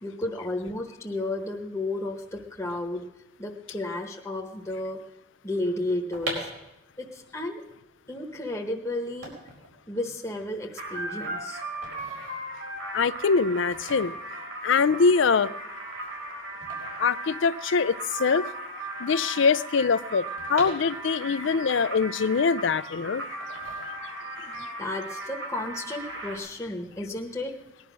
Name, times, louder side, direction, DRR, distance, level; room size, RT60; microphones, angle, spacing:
voice 1, 0.0-3.0 3.4-5.0 5.4-6.5 7.0-7.6 8.1-9.3 9.9-11.6 24.5-27.5, left 2 dB, 15° left, 1.0 m, -33 dB
sound 1, 6.0-18.0 18.3-18.4 18.5-21.4 21.8-22.8 23.4-24.4 24.7-25.0, right 2 dB, 90° right, 4.7 m, -42 dB
sound 2, 10.8-26.4, right 2 dB, 70° right, 4.5 m, -37 dB
voice 2, 12.9-14.1 14.6-15.5 17.0-18.5 19.0-23.4 24.5-24.7, left 5 dB, 65° left, 0.4 m, -23 dB
19.5 x 11.0 x 6.1 m
head